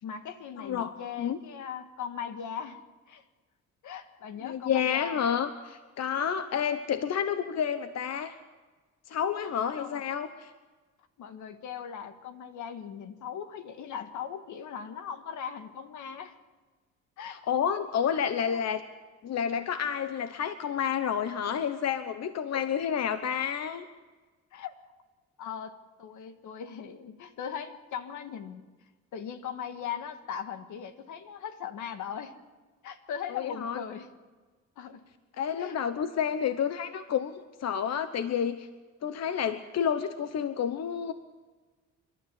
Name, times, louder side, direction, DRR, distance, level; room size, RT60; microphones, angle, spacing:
voice 1, 0.0-2.8 3.1-3.2 3.8-5.2 6.5-6.6 9.8-10.0 11.2-16.4 17.2-17.4 18.5-18.6 22.5-22.7 24.5-24.7 25.4-28.7 29.1-32.3 32.8-34.1 34.8-35.0 35.6-35.8, left 8 dB, 80° left, 9 dB, 1.8 m, -39 dB
voice 2, 0.6-1.4 4.4-8.4 9.1-10.5 17.3-18.8 19.2-23.9 33.3-33.8 35.4-37.3 37.6-38.7 39.0-41.1, left 8 dB, 60° left, 10 dB, 1.1 m, -30 dB
29.5 x 12.5 x 8.5 m, 1.3 s
cardioid pair, 90°, 30 cm